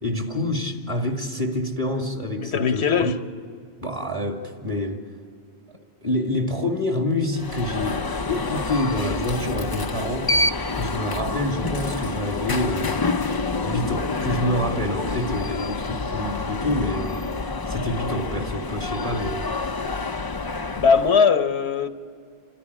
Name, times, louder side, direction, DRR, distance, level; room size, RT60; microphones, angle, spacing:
voice 1, 0.0-3.1 3.8-5.0 6.0-8.0 8.3-10.3 10.7-13.2 13.6-17.2 17.7-19.5, left 1 dB, 30° right, 2.4 m, -27 dB
voice 2, 2.4-3.1 20.8-21.9, left 6 dB, 80° left, 1.2 m, -19 dB
Alarm, 7.3-21.3, left 3 dB, 30° left, 0.4 m, -27 dB
29.0 x 13.5 x 9.8 m
omnidirectional pair, 1.1 m